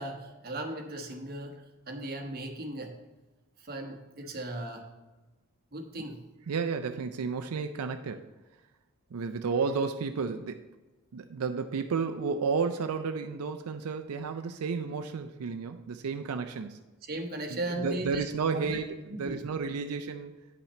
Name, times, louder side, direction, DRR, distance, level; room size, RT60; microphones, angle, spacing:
voice 1, 0.0-1.5 1.9-2.9 3.6-4.9 5.7-6.2 17.0-18.2 18.5-18.8 19.1-19.4, right 1 dB, 45° right, 3 dB, 1.1 m, -37 dB
voice 2, 6.5-8.3 9.1-10.7 11.1-16.8 17.5-20.3, right 5 dB, 85° right, 7 dB, 0.4 m, -32 dB
9.3 x 5.7 x 4.2 m, 1.2 s
head